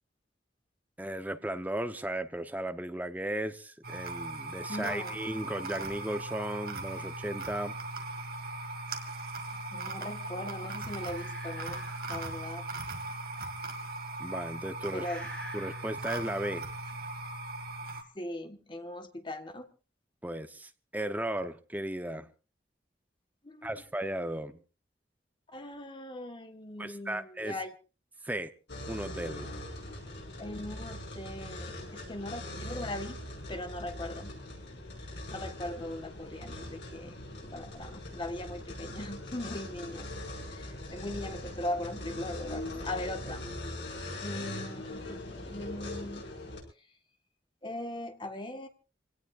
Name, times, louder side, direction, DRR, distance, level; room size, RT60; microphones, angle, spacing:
voice 1, 1.0-7.8 14.2-15.1 15.5-16.7 20.2-22.3 23.6-24.6 26.8-27.6 28.2-28.5 28.9-29.6, right 1 dB, 10° right, 9 dB, 0.8 m, -35 dB
sound 1, 3.8-18.0, right 2 dB, 55° right, 2.1 m, -39 dB
voice 2, 4.7-5.2 9.5-11.8 12.1-12.6 14.9-15.2 18.1-19.7 23.4-23.8 25.5-27.7 30.4-33.2 33.5-34.3 35.3-37.1 37.4-40.1 40.5-43.5 44.2-46.3 47.6-48.7, left 1 dB, 30° left, 7 dB, 1.5 m, -40 dB
sound 2, 10.9-12.4 15.0-16.2, equal, 5° left, 4.7 m, -48 dB
sound 3, 28.7-46.6, left 1 dB, 85° left, 6.7 m, -41 dB
26.5 x 17.5 x 2.5 m, 0.33 s
head